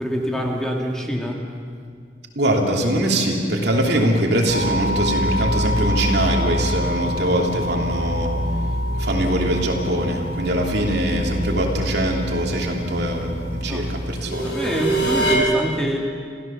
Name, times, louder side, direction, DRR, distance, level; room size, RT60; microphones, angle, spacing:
voice 1, 0.0-1.4 13.7-13.8 14.4-16.0, equal, 5° left, -1 dB, 2.4 m, -25 dB
voice 2, 2.3-14.6, right 1 dB, 60° right, 0 dB, 3.0 m, -22 dB
sound 1, 4.5-15.3, equal, 70° left, 7.7 m, -25 dB
28.5 x 15.5 x 7.1 m, 2.1 s
head